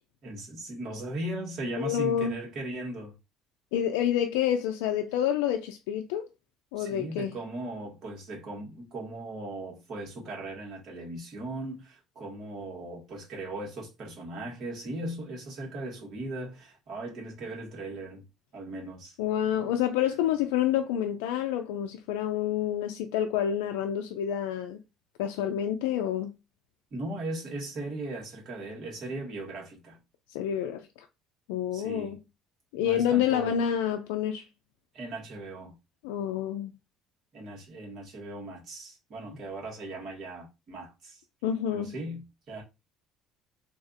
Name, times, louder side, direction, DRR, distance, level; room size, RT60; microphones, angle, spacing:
voice 1, 0.2-3.1 6.8-18.2 18.5-19.2 26.9-30.0 31.7-32.2 32.8-33.6 34.9-35.8 37.3-41.2 41.7-42.6, right 2 dB, 55° right, 1.7 m, -38 dB
voice 2, 1.8-2.4 3.7-6.3 6.7-7.3 19.2-24.8 25.2-26.3 30.3-30.9 31.5-32.2 32.7-34.4 36.0-36.7 41.4-42.0, left 10 dB, 85° left, 0.3 m, -28 dB
3.3 x 2.4 x 2.5 m
supercardioid pair, 80°, 0 cm